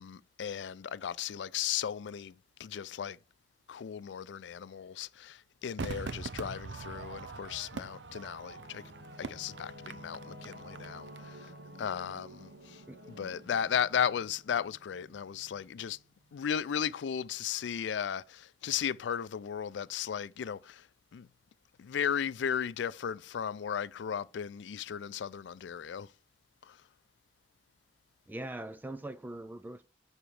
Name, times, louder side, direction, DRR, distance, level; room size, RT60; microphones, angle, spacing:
voice 1, 0.0-3.2 3.7-8.8 9.2-11.5 11.8-12.8 13.1-16.0 16.3-20.9 21.1-21.3 21.8-26.1 26.6-26.8, left 8 dB, 85° left, 0.4 m, -35 dB
Crowd / Fireworks, 5.8-11.2 11.4-11.5, right 4 dB, 85° right, 0.6 m, -42 dB
Singing / Musical instrument, 7.4-16.4, equal, 65° right, 1.7 m, -52 dB
voice 2, 28.3-29.8, right 1 dB, 10° right, 0.3 m, -41 dB
6.9 x 4.4 x 6.3 m
head